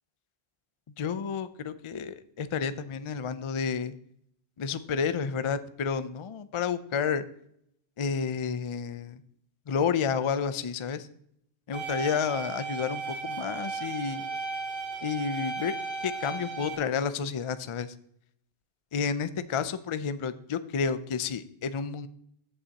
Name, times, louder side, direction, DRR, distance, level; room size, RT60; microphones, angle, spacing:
voice 1, 1.0-4.0 4.6-7.2 8.0-9.2 9.7-11.1 11.7-14.2 15.0-15.7 16.0-17.9 18.9-22.1, left 6 dB, 50° left, 12 dB, 0.3 m, -30 dB
sound 1, 11.7-16.8, right 4 dB, ahead, 2.4 m, -35 dB
15.0 x 5.6 x 2.8 m, 0.70 s
omnidirectional pair, 1.1 m